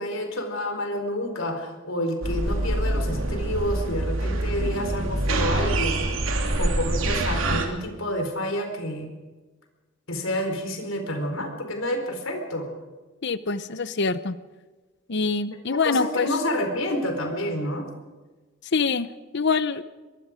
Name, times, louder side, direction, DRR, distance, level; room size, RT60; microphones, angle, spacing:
voice 1, 0.0-6.1 6.6-9.1 10.1-12.7 15.7-17.9, left 1 dB, 85° left, 5 dB, 4.5 m, -29 dB
sound 1, 2.2-7.7, right 2 dB, 85° right, 2.8 m, -25 dB
voice 2, 13.2-14.4 15.1-16.3 18.7-19.1 19.3-19.8, left 4 dB, 60° left, 14 dB, 0.8 m, -24 dB
23.5 x 21.5 x 5.2 m, 1.3 s
head